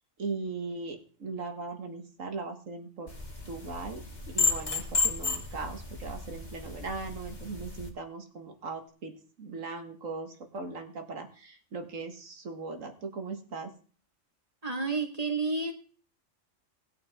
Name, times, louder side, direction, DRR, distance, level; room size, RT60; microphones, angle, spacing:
voice 1, 0.2-3.1 3.5-4.0 4.3-9.1 9.4-13.7, right 4 dB, 90° right, 2.1 m, -39 dB
sound 1, 3.1-7.9, left 4 dB, 35° left, 1.9 m, -33 dB
voice 2, 14.6-15.7, right 3 dB, 30° right, 2.0 m, -30 dB
19.0 x 8.7 x 3.6 m
omnidirectional pair, 1.3 m